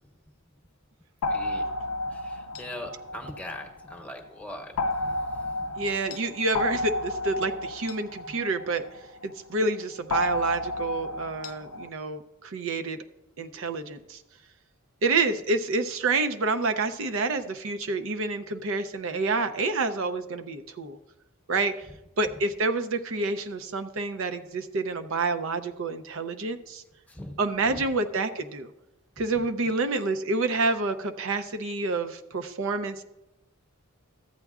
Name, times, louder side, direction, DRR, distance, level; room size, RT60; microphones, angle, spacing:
sound 1, 1.2-4.0 4.8-9.3 10.1-11.9, left 2 dB, 80° left, 0.4 m, -32 dB
voice 1, 1.3-1.7 2.1-5.7 27.1-27.4 27.7-27.9 29.2-29.8, left 1 dB, 5° left, 2 dB, 0.9 m, -42 dB
voice 2, 5.8-8.8 9.2-13.0 13.4-14.2 15.0-21.0 21.5-21.9 22.2-26.8 27.4-28.7 29.2-33.0, right 3 dB, 65° right, 8 dB, 0.5 m, -28 dB
14.0 x 8.9 x 2.4 m, 0.96 s
head